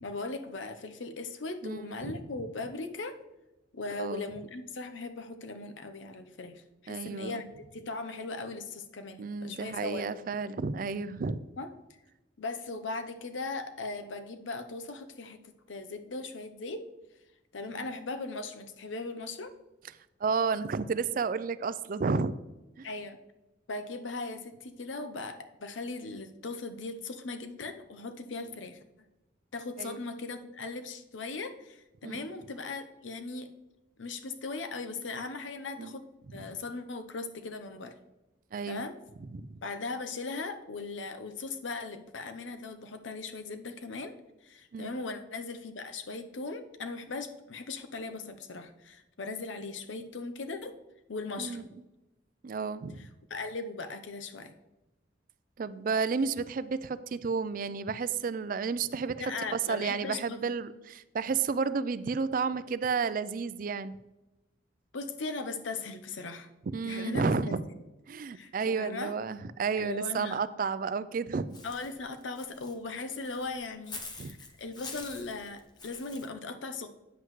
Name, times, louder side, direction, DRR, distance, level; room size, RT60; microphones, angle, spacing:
voice 1, 0.0-3.2 3.7-7.4 7.7-10.0 11.6-11.7 12.4-15.4 15.7-16.9 17.5-19.5 22.8-23.2 23.7-28.8 29.5-33.5 34.0-36.0 36.3-37.9 38.7-38.9 39.6-44.1 44.4-50.8 51.1-51.7 53.0-54.5 59.2-60.4 64.9-66.5 66.8-67.6 68.3-69.1 69.8-70.4 71.6-76.9, left 3 dB, 85° left, 8 dB, 0.8 m, -38 dB
voice 2, 1.6-2.2 4.0-4.3 6.9-7.5 9.2-11.4 17.7-17.9 20.2-22.4 22.8-22.9 29.8-30.0 32.0-32.3 35.8-36.0 36.3-36.5 38.5-38.9 39.3-39.5 44.7-45.0 51.4-51.6 52.4-53.1 55.6-59.2 59.5-64.0 66.7-67.6 68.1-71.6 74.2-74.3, right 5 dB, 45° right, 15 dB, 0.4 m, -32 dB
Walk footsteps / Bird, 71.5-76.3, left 3 dB, 20° left, 0.8 m, -46 dB
9.2 x 7.7 x 3.1 m, 1.0 s
head